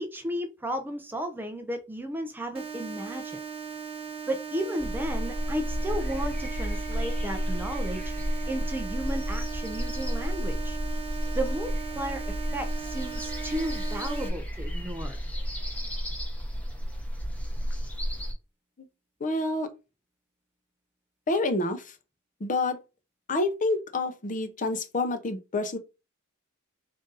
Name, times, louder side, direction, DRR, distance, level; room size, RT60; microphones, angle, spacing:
voice 1, 0.0-3.4 4.3-8.1 8.5-10.8 11.3-15.2, right 1 dB, 10° right, 0.4 m, -34 dB
sound 1, 2.5-14.3, right 6 dB, 25° right, 0.8 m, -38 dB
sound 2, 4.8-18.3, equal, 5° left, 0.8 m, -32 dB
voice 2, 19.2-19.7 21.3-21.9 22.4-22.8 23.3-25.8, left 2 dB, 35° left, 0.6 m, -28 dB
3.7 x 2.6 x 3.9 m
head